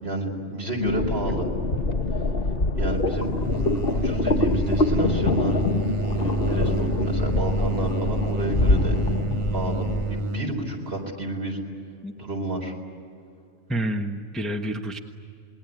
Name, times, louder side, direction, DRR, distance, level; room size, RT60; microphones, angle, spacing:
voice 1, 0.0-1.5 2.7-3.3 3.9-5.6 6.2-9.0 9.5-11.6 12.2-12.7, right 1 dB, 55° right, 1 dB, 4.5 m, -30 dB
sound 1, 0.8-10.2, left 2 dB, 50° left, 1.6 m, -25 dB
sound 2, 2.8-10.5, right 4 dB, 30° right, 0.6 m, -30 dB
voice 2, 13.7-15.0, right 1 dB, ahead, 3 dB, 1.2 m, -28 dB
27.5 x 21.5 x 9.3 m, 2.5 s
omnidirectional pair, 1.3 m